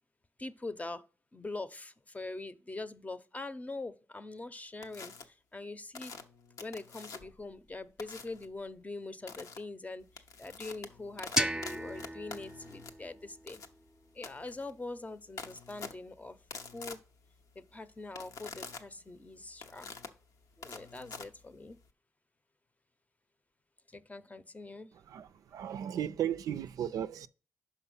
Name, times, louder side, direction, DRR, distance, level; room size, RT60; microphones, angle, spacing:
voice 1, 0.4-1.1 1.3-6.1 6.6-10.1 10.4-13.6 14.1-16.4 16.7-17.0 17.6-20.0 20.6-21.8 23.9-24.9, left 2 dB, 25° left, 0.6 m, -43 dB
sound 1, 4.8-5.2 5.9-7.4 8.0-8.5 9.3-9.6 10.0-21.9, left 5 dB, 80° left, 0.8 m, -47 dB
sound 2, 11.4-14.2, right 1 dB, 10° right, 0.6 m, -36 dB
voice 2, 25.1-27.3, right 10 dB, 85° right, 0.4 m, -35 dB
5.6 x 5.1 x 5.5 m
cardioid pair, 55°, 6 cm